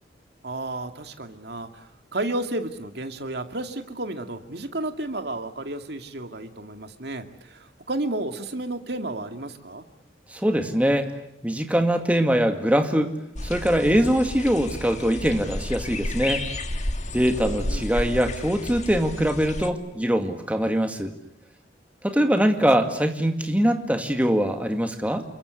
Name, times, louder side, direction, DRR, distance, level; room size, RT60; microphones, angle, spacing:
voice 1, 0.4-9.8 17.5-17.9 22.2-22.5 22.8-22.9, right 2 dB, 60° right, 6 dB, 2.3 m, -32 dB
voice 2, 10.3-11.1 11.4-13.1 13.4-16.5 17.1-21.1 22.0-25.2, equal, 10° right, 5 dB, 2.1 m, -22 dB
sound 1, 13.4-19.7, left 1 dB, 40° left, 1.8 m, -32 dB
28.5 x 23.0 x 8.3 m, 0.74 s
head